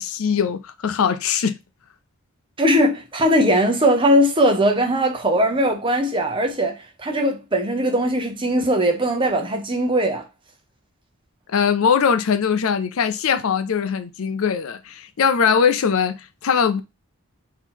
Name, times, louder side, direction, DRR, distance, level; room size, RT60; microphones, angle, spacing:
voice 1, 0.0-1.6 11.5-16.8, left 6 dB, 70° left, 0.5 m, -21 dB
voice 2, 2.6-10.3, equal, 20° right, 0.8 m, -20 dB
3.8 x 2.9 x 4.3 m
head